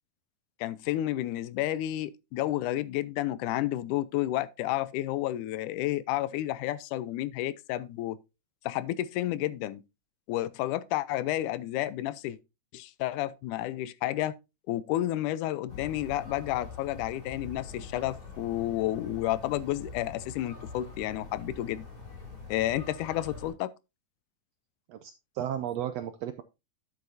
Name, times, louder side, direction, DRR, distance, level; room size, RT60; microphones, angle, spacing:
voice 1, 0.6-8.2 8.7-9.8 10.3-12.4 12.7-14.3 14.7-21.8 22.5-23.7, left 14 dB, 90° left, 2.1 m, -31 dB
sound 1, 15.7-23.5, left 3 dB, 65° left, 7.2 m, -44 dB
voice 2, 24.9-26.4, right 10 dB, 80° right, 1.4 m, -34 dB
10.5 x 7.8 x 2.7 m
omnidirectional pair, 3.5 m